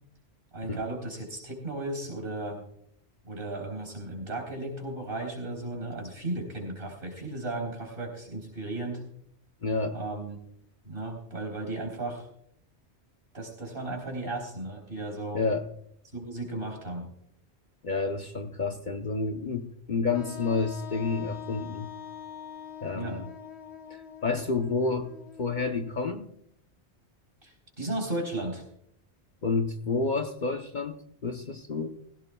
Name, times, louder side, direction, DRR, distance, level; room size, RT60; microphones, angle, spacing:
voice 1, 0.5-2.6 3.2-9.0 9.9-10.4 10.8-12.3 13.3-15.4 16.1-17.1 22.9-23.2 27.4-28.6, right 2 dB, 55° right, 2 dB, 4.0 m, -35 dB
voice 2, 9.6-10.0 15.3-15.7 17.8-21.9 22.8-23.3 24.2-25.1 25.4-26.3 29.4-31.0 31.2-31.9, left 4 dB, 45° left, 5 dB, 0.9 m, -29 dB
Wind instrument woodwind instrument, 20.1-25.9, left 8 dB, 70° left, 1.2 m, -43 dB
17.0 x 16.5 x 2.3 m, 0.70 s
omnidirectional pair, 1.2 m